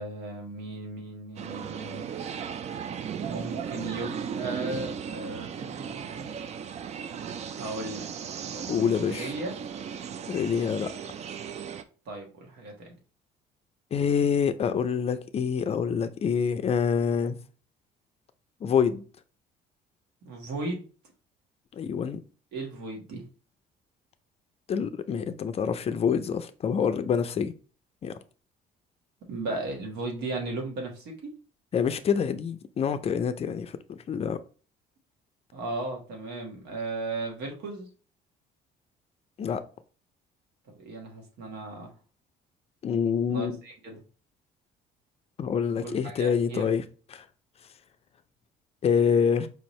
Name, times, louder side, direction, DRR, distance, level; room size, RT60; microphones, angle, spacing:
voice 1, 0.0-2.1 3.2-6.3 7.5-8.1 8.4-8.8 9.1-9.5 12.0-12.9 20.2-20.9 22.5-23.2 29.3-31.3 35.5-37.9 40.7-41.9 43.3-44.0 45.8-46.7, right 2 dB, 80° right, 1.5 m, -36 dB
sound 1, 1.4-11.8, right 7 dB, 40° right, 0.4 m, -36 dB
voice 2, 8.7-9.3 10.3-10.9 13.9-17.4 18.6-19.0 21.7-22.2 24.7-27.5 28.0-28.2 31.7-34.4 39.4-39.6 42.8-43.6 45.4-46.8 48.8-49.5, left 7 dB, 35° left, 0.4 m, -26 dB
4.9 x 2.6 x 3.1 m
cardioid pair, 110°, 17 cm